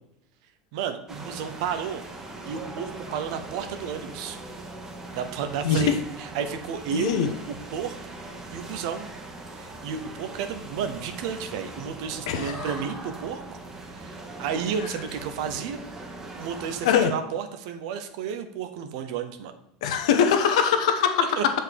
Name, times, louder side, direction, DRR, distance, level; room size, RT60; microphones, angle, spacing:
voice 1, 0.7-2.1 2.5-4.4 5.1-7.2 7.5-8.0 8.5-9.1 9.5-13.6 13.9-15.8 16.4-19.5 21.4-21.5, right 7 dB, 70° right, 8 dB, 0.8 m, -32 dB
sound 1, 1.1-17.0, right 2 dB, 15° right, 1.1 m, -40 dB
voice 2, 5.6-6.0 6.9-7.3 12.3-12.7 16.8-17.1 19.8-21.3, left 7 dB, 85° left, 7 dB, 1.0 m, -22 dB
6.9 x 4.7 x 4.6 m, 0.80 s
supercardioid pair, 125°, 3 cm